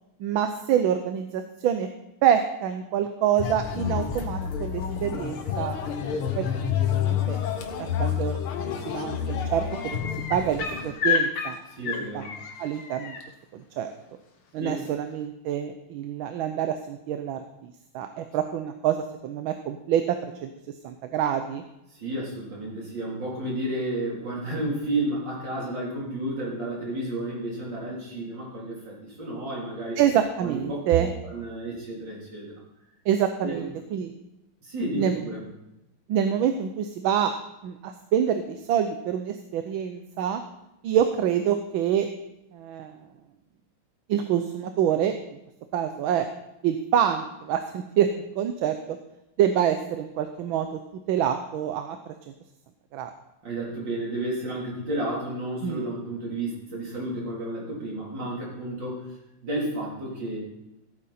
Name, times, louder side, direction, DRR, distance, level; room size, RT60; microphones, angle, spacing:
voice 1, 0.2-1.9 2.2-5.8 6.3-7.4 7.8-10.0 10.3-11.6 12.1-12.2 12.6-13.2 13.5-13.9 14.5-20.5 20.8-21.6 30.0-31.1 33.1-34.1 34.9-35.2 36.1-37.4 37.6-40.4 40.8-42.1 42.5-42.9 44.1-45.1 45.7-46.3 46.6-48.1 48.4-48.8 49.4-50.7 51.1-52.1 52.9-53.1 55.6-55.8, right 9 dB, 75° right, 8 dB, 1.5 m, -26 dB
sound 1, 3.4-10.9, left 8 dB, 85° left, 2.1 m, -29 dB
sound 2, 8.5-8.9 9.1-13.2 14.9-15.0, left 7 dB, 60° left, 1.9 m, -31 dB
voice 2, 11.7-12.3 14.6-14.9 21.9-30.0 30.4-32.5 33.4-33.6 34.6-35.4 53.4-59.2 59.4-60.4, right 1 dB, 55° right, -4 dB, 4.2 m, -32 dB
15.5 x 8.9 x 4.2 m, 0.89 s
omnidirectional pair, 2.3 m